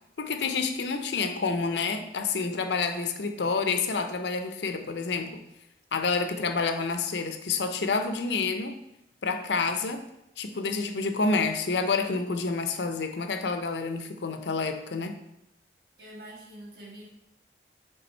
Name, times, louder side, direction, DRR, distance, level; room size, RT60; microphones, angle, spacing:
voice 1, 0.2-5.4 5.9-8.7 9.2-10.0 10.4-15.2, left 4 dB, 80° left, 7 dB, 0.6 m, -28 dB
voice 2, 16.0-17.1, right 1 dB, 60° right, -3 dB, 1.6 m, -45 dB
6.9 x 3.5 x 4.4 m, 0.87 s
head